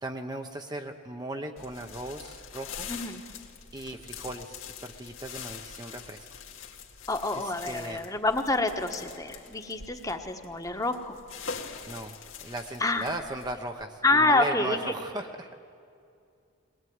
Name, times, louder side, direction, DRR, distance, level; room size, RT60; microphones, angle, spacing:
voice 1, 0.0-2.9 3.7-6.3 7.3-8.0 11.9-12.1 12.4-15.5, right 1 dB, 20° right, 4 dB, 0.8 m, -37 dB
sound 1, 1.6-13.8, left 6 dB, 75° left, 2.2 m, -44 dB
voice 2, 2.9-3.2 7.1-11.2 12.8-13.1 14.0-14.9, left 2 dB, 15° left, 5 dB, 1.3 m, -27 dB
22.0 x 19.0 x 9.5 m, 2.4 s
head